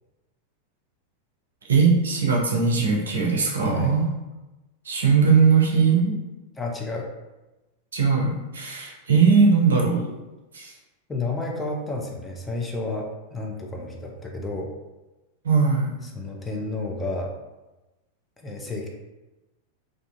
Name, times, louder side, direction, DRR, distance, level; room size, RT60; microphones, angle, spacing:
voice 1, 1.7-4.1 4.9-6.2 7.9-10.1 10.5-10.7 15.4-15.9, right 5 dB, 70° right, -1 dB, 0.5 m, -20 dB
voice 2, 3.6-3.9 6.6-7.1 11.1-14.7 16.0-17.3 18.4-18.9, left 2 dB, 15° left, 0 dB, 0.4 m, -31 dB
2.5 x 2.4 x 2.5 m, 1.1 s
figure-of-eight pair, 90°, 0 cm